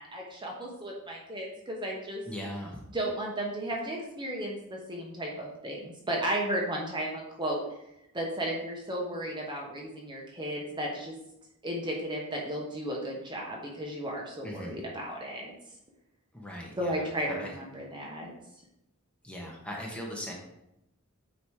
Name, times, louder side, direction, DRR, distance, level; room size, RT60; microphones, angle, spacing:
voice 1, 0.0-2.2 2.9-7.6 8.1-11.1 11.6-15.5 16.8-18.3, right 1 dB, 20° right, -2 dB, 1.1 m, -34 dB
voice 2, 2.2-2.8 14.4-14.8 16.3-17.5 19.2-20.3, equal, 5° left, -2 dB, 1.2 m, -39 dB
8.5 x 3.1 x 4.8 m, 0.85 s
head